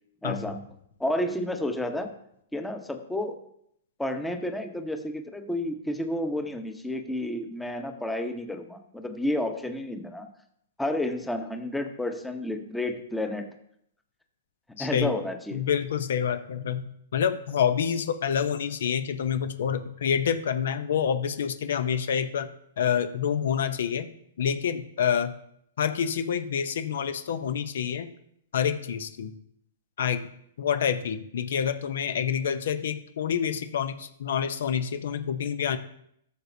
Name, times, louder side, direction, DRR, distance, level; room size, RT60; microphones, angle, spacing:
voice 1, 0.2-0.7 1.0-2.1 2.5-3.4 4.0-10.3 10.8-13.6 14.7-15.6, left 1 dB, 5° left, 6 dB, 0.9 m, -31 dB
voice 2, 14.8-15.1 15.5-16.8 17.1-22.5 22.8-24.1 24.4-25.3 25.8-28.1 28.5-29.3 30.0-30.2 30.6-35.8, left 8 dB, 75° left, 10 dB, 0.8 m, -27 dB
13.5 x 6.8 x 2.8 m, 0.72 s
hypercardioid pair, 130°, 0 cm